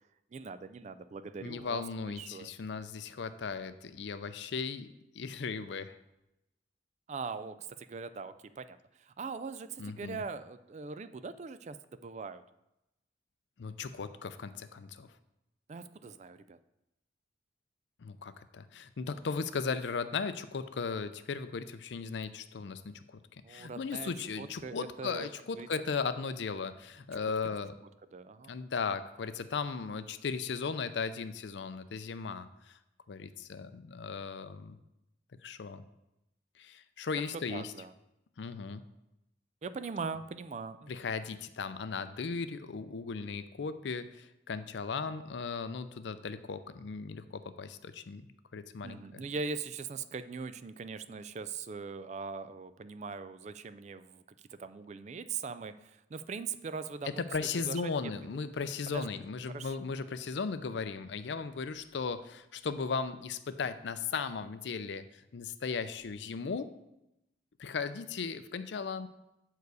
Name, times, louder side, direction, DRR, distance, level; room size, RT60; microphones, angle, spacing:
voice 1, 0.3-2.5 7.1-12.4 15.7-16.6 23.4-24.1 24.4-25.7 27.1-27.2 28.1-28.5 37.5-37.9 39.6-40.9 48.8-54.2 54.5-57.3 57.6-58.1 58.9-59.2 59.5-59.8, right 5 dB, 40° right, 13 dB, 0.3 m, -41 dB
voice 2, 1.4-4.9 5.1-5.9 9.8-10.2 13.6-15.1 18.0-23.2 23.5-27.7 28.5-32.7 33.1-34.8 35.4-35.8 36.6-37.7 38.4-38.8 40.9-49.2 57.2-65.0 65.3-66.7 67.6-69.1, left 5 dB, 75° left, 12 dB, 0.5 m, -37 dB
7.9 x 4.7 x 4.8 m, 0.89 s
head